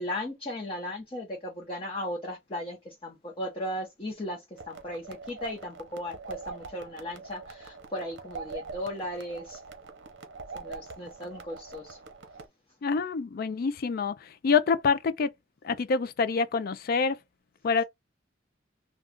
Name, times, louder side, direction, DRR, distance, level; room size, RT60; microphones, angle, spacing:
voice 1, 0.0-4.4 4.7-9.6 10.5-12.0, left 1 dB, 30° left, 0.8 m, -36 dB
sound 1, 4.6-12.5, right 4 dB, 70° right, 0.7 m, -44 dB
voice 2, 12.8-15.3 15.6-17.2 17.6-17.8, left 5 dB, 50° left, 0.3 m, -26 dB
2.4 x 2.3 x 3.6 m
head